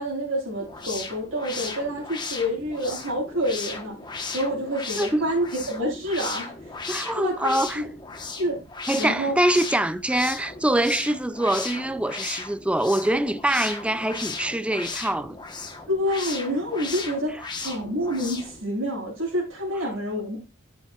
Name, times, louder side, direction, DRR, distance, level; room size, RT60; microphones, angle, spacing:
voice 1, 0.0-4.0 4.3-6.7 7.1-7.9 8.4-8.6 9.0-9.3 15.9-20.4, equal, 80° right, 5.9 m, -28 dB
sound 1, 0.6-18.6, left 4 dB, 20° left, 1.2 m, -36 dB
voice 2, 5.0-5.3 6.9-7.8 8.9-15.4, right 1 dB, 5° right, 0.4 m, -24 dB
11.5 x 8.6 x 2.5 m
head